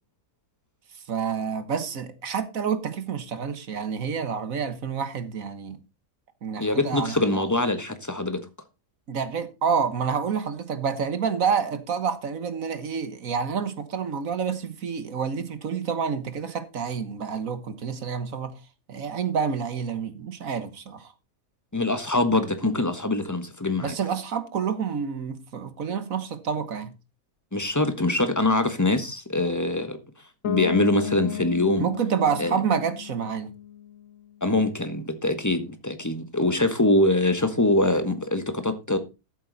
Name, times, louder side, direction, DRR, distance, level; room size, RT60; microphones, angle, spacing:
voice 1, 1.1-5.8 6.4-7.4 9.1-18.5 18.9-21.1 23.8-26.9 31.8-33.5, right 6 dB, 65° right, 1.7 m, -28 dB
voice 2, 6.6-8.4 21.7-23.9 27.5-30.0 30.4-31.9 32.4-32.6 34.4-39.0, left 2 dB, 10° left, 1.4 m, -23 dB
Bass guitar, 30.4-34.3, left 8 dB, 65° left, 1.2 m, -34 dB
13.5 x 7.9 x 4.1 m
omnidirectional pair, 1.5 m